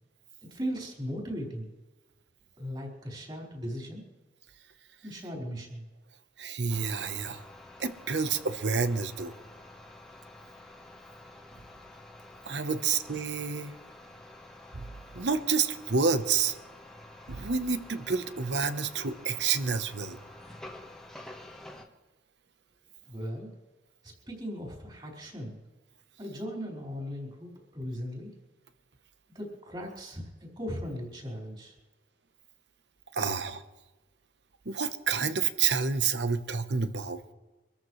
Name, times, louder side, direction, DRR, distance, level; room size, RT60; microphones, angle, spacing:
voice 1, 0.4-1.7 2.6-4.1 5.0-5.9 23.1-23.5 24.0-25.6 26.2-28.3 29.3-31.7, equal, 25° right, -2 dB, 4.6 m, -38 dB
voice 2, 6.4-7.4 7.8-9.3 12.4-13.7 14.7-16.6 17.3-20.2 33.1-33.6 34.6-37.2, right 5 dB, 75° right, 11 dB, 1.0 m, -29 dB
sound 1, 6.7-21.9, left 1 dB, 5° left, 1.3 m, -49 dB
25.5 x 14.0 x 3.2 m, 1.1 s
head